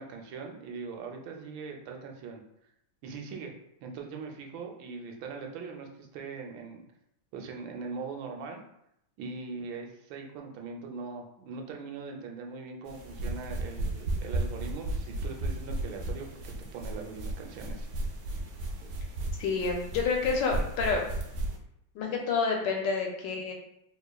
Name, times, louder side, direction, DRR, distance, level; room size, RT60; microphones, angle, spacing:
voice 1, 0.0-2.4 3.0-3.5 3.8-6.8 7.3-8.6 9.2-17.9, right 4 dB, 85° right, 2 dB, 1.4 m, -41 dB
sound 1, 12.9-21.6, right 2 dB, 70° right, 0.9 m, -34 dB
voice 2, 19.4-21.0 21.9-23.5, left 4 dB, 75° left, 1 dB, 1.2 m, -28 dB
4.0 x 2.9 x 2.2 m, 0.79 s
omnidirectional pair, 2.1 m